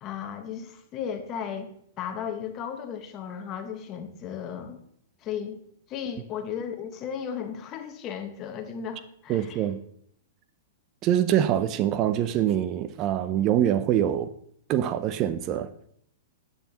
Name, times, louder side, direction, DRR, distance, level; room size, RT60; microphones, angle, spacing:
voice 1, 0.0-1.7 2.0-4.8 5.2-5.6 5.9-9.7, left 8 dB, 35° left, 1.2 m, -35 dB
voice 2, 9.3-9.8 11.0-14.3 14.7-15.7, right 11 dB, 35° right, 0.5 m, -24 dB
10.0 x 8.3 x 2.9 m
hypercardioid pair, 110°, 0 cm